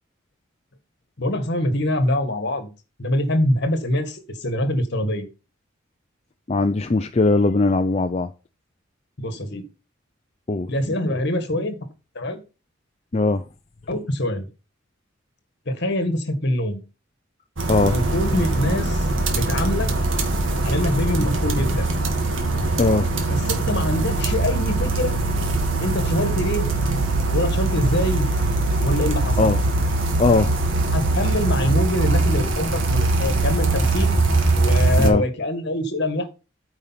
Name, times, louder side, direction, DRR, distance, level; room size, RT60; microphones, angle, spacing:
voice 1, 1.2-2.7 3.0-5.3 9.2-9.6 10.7-11.8 12.2-12.4 13.9-14.5 15.7-16.8 17.9-19.9 20.6-21.9 23.3-25.2 25.8-26.7 27.3-28.3 28.8-29.5 30.9-34.2 34.5-36.3, left 1 dB, 55° left, 1.8 m, -24 dB
voice 2, 6.5-8.3 10.5-10.7 13.1-13.4 17.7-18.0 22.8-23.1 29.4-29.6 30.2-30.5 35.0-35.3, left 3 dB, 30° left, 0.5 m, -19 dB
sound 1, 17.6-35.1, right 2 dB, 70° right, 1.8 m, -22 dB
9.0 x 5.2 x 5.8 m
head